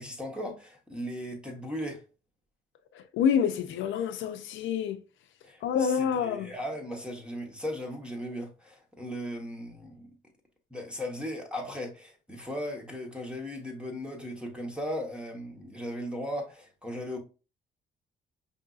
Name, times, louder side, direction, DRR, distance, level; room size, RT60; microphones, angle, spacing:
voice 1, 0.0-2.0 5.5-10.1 10.7-17.2, equal, 5° right, 1.1 m, -37 dB
voice 2, 2.9-5.0 5.6-6.5, left 7 dB, 80° left, 0.4 m, -27 dB
5.3 x 2.6 x 2.3 m
cardioid pair, 90°, 20 cm